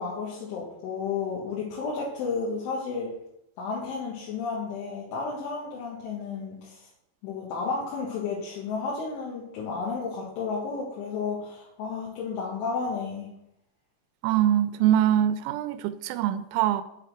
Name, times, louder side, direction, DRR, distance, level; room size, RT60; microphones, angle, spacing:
voice 1, 0.0-3.1 3.6-6.9 7.2-13.3, left 4 dB, 85° left, -6 dB, 4.2 m, -32 dB
voice 2, 14.2-16.8, right 11 dB, 90° right, 11 dB, 3.0 m, -23 dB
8.3 x 5.8 x 6.6 m, 0.79 s
omnidirectional pair, 5.4 m